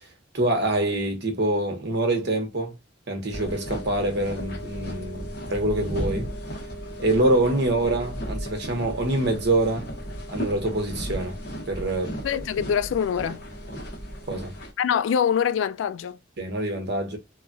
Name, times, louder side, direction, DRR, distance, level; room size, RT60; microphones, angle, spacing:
voice 1, 0.3-2.7 3.1-6.3 7.0-9.9 10.3-11.3 11.7-12.2 14.3-14.5 16.4-17.2, right 1 dB, 60° right, 0.9 m, -25 dB
sound 1, 3.3-14.7, equal, 55° left, 1.1 m, -35 dB
voice 2, 12.2-13.4 14.8-16.2, left 8 dB, 75° left, 0.3 m, -24 dB
3.0 x 2.3 x 2.5 m
head